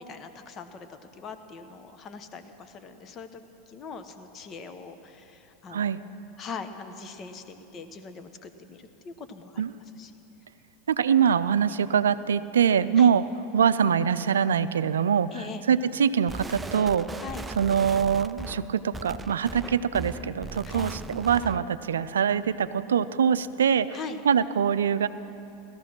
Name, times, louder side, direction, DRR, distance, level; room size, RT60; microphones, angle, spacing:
voice 1, 0.0-3.4 3.7-9.6 9.9-10.1 13.0-13.1 15.3-15.6 17.2-17.5 20.6-20.9 23.9-24.2, left 5 dB, 35° left, 8 dB, 1.2 m, -41 dB
voice 2, 10.9-13.2 13.5-15.4 15.7-17.1 17.6-24.0 24.2-25.1, right 7 dB, 80° right, 14 dB, 0.4 m, -23 dB
sound 1, 16.3-21.7, right 2 dB, 15° right, 0.5 m, -38 dB
17.0 x 13.5 x 6.1 m, 3.0 s
hypercardioid pair, 90°, 0 cm